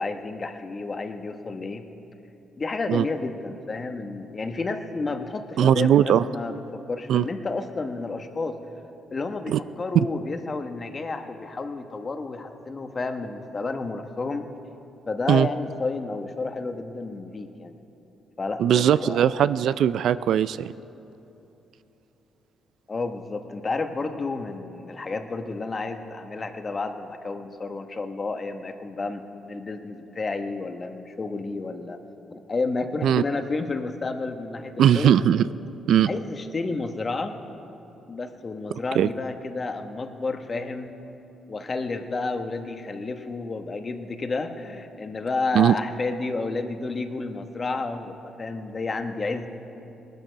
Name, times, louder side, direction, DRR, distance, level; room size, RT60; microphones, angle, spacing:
voice 1, 0.0-1.8 2.6-8.6 9.1-14.5 15.1-17.7 18.4-19.3 22.9-32.0 32.3-35.2 36.1-37.4 38.1-40.9 41.5-49.5, left 3 dB, 35° left, 7 dB, 1.1 m, -31 dB
voice 2, 5.6-6.2 7.1-7.2 9.5-9.6 9.9-10.0 15.3-15.5 18.6-20.7 33.0-33.2 34.8-35.5 35.9-36.1 39.0-39.1 45.5-45.7, right 10 dB, 70° right, 15 dB, 0.3 m, -19 dB
19.0 x 12.0 x 5.1 m, 3.0 s
cardioid pair, 90°, 0 cm